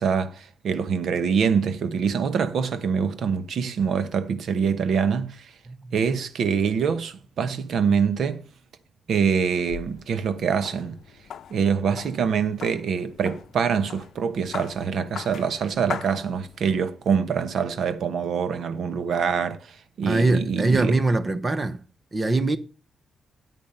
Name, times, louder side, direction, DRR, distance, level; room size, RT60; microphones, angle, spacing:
voice 1, 0.0-5.5 5.9-8.4 9.1-11.0 11.5-21.0, right 6 dB, 65° right, 1.1 m, -25 dB
sound 1, 9.3-16.8, left 8 dB, 75° left, 0.7 m, -41 dB
voice 2, 20.0-21.8 22.1-22.6, right 2 dB, 25° right, 0.8 m, -23 dB
9.3 x 9.0 x 5.5 m
wide cardioid pair, 175°, 0 cm